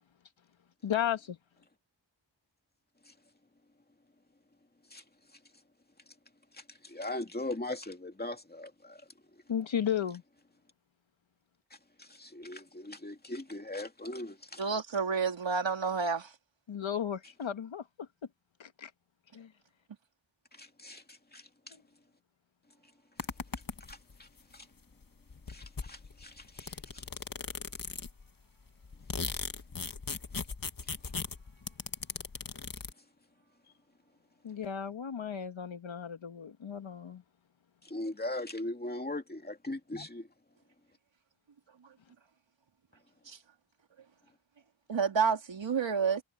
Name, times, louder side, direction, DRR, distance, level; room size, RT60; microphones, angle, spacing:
voice 1, 0.8-1.4 9.5-10.2 16.7-18.1 18.6-18.9 19.3-19.5 34.4-37.2, left 9 dB, 85° left, 1.6 m, -34 dB
voice 2, 6.5-9.0 9.3-9.4 12.0-14.6 20.5-21.8 23.9-24.7 25.5-27.0 29.8-29.9 37.8-40.3, left 2 dB, 20° left, 2.5 m, -40 dB
voice 3, 14.6-16.3 43.3-43.4 44.9-46.2, right 5 dB, 75° right, 3.3 m, -29 dB
sound 1, 23.2-24.2 25.0-25.1 25.3-28.3 28.7-32.9, left 4 dB, 45° left, 1.9 m, -39 dB
wide cardioid pair, 110°, 45 cm